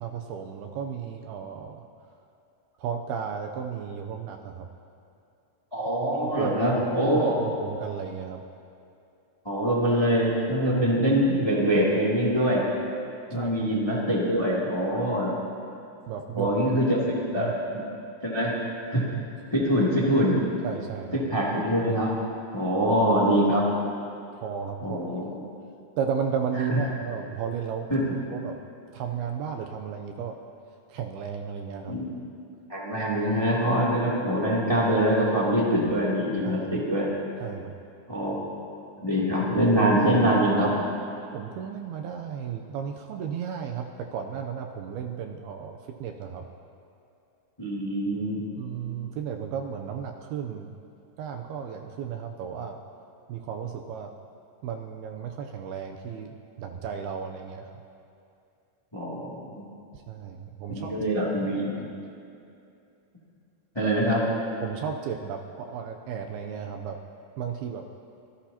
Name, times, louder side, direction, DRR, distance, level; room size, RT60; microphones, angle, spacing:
voice 1, 0.0-1.8 2.8-4.7 6.2-6.6 7.4-8.4 13.3-13.7 16.1-16.5 16.9-17.1 17.4-17.5 20.6-21.2 24.3-25.0 26.0-27.9 28.3-28.6 28.9-30.4 30.9-32.0 36.4-36.7 37.4-37.7 41.3-46.5 48.6-50.7 51.2-52.8 53.3-54.1 54.6-57.7 59.9-61.2 61.7-61.9 64.6-67.0 67.4-67.9, right 7 dB, 80° right, 3 dB, 2.3 m, -34 dB
voice 2, 5.7-7.3 9.4-12.6 13.3-15.3 16.3-17.0 17.3-17.5 18.2-18.5 18.9-19.0 19.5-20.4 21.3-22.2 22.5-23.7 24.8-25.4 26.7-26.8 27.9-28.0 31.9-32.1 32.7-37.1 38.1-38.4 39.0-40.8 47.6-48.4 58.9-59.6 60.7-61.7 63.7-64.2, equal, 10° left, -6 dB, 1.3 m, -24 dB
25.5 x 18.0 x 2.9 m, 2.5 s
omnidirectional pair, 5.1 m